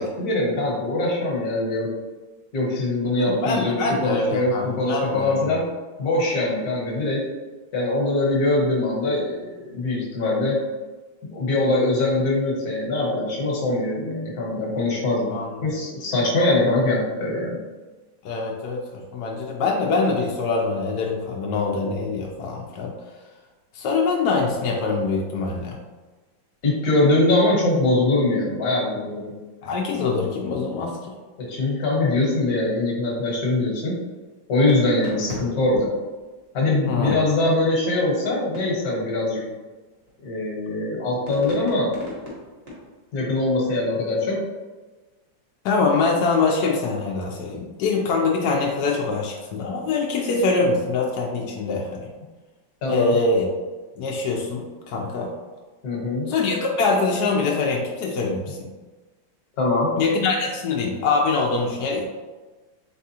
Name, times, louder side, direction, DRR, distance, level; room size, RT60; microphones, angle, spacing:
voice 1, 0.2-1.9 2.5-5.6 6.0-7.2 7.7-10.6 11.3-15.3 15.6-17.6 26.6-29.3 31.4-34.0 34.5-35.9 36.5-39.4 40.2-41.9 43.1-44.4 52.8-53.1 55.8-56.3 59.6-59.9, left 2 dB, 55° left, -2 dB, 1.4 m, -22 dB
voice 2, 3.2-5.5 15.3-15.7 18.2-22.9 23.7-25.8 29.6-31.2 36.9-37.2 45.6-52.0 52.9-53.5 54.0-55.3 56.3-58.7 60.0-62.0, left 4 dB, 80° left, -1 dB, 0.9 m, -24 dB
sound 1, 34.7-36.7 38.5-38.9 39.5-40.7 41.3-43.4, left 1 dB, 40° right, 1.0 m, -38 dB
4.1 x 3.5 x 2.8 m, 1.3 s
omnidirectional pair, 2.2 m